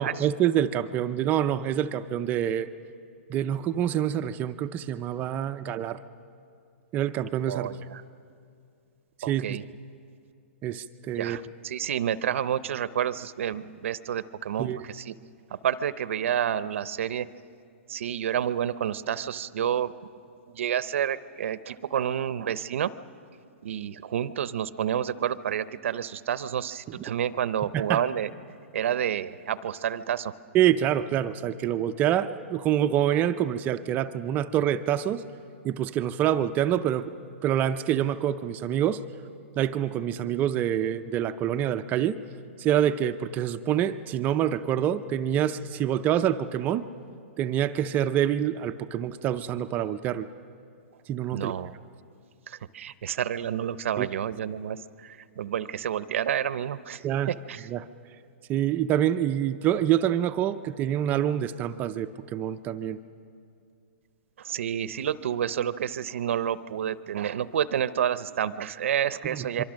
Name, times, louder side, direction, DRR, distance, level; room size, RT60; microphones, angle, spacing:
voice 1, 0.0-2.7 3.3-6.0 6.9-7.7 9.3-9.6 10.6-11.4 14.6-14.8 27.7-28.0 30.5-35.2 35.6-37.1 37.4-39.0 39.6-42.2 42.6-46.8 47.4-50.3 51.1-51.5 54.0-54.1 57.0-57.3 57.7-57.9 58.5-63.0 69.3-69.6, right 10 dB, 25° right, 10 dB, 0.5 m, -26 dB
voice 2, 7.5-8.0 9.2-9.6 11.2-15.1 15.5-17.3 17.9-19.9 20.5-22.9 23.6-28.3 28.7-30.3 51.3-51.7 52.5-57.7 64.4-69.6, right 9 dB, 70° right, 15 dB, 0.7 m, -29 dB
25.5 x 24.0 x 6.3 m, 2.4 s
hypercardioid pair, 145°, 7 cm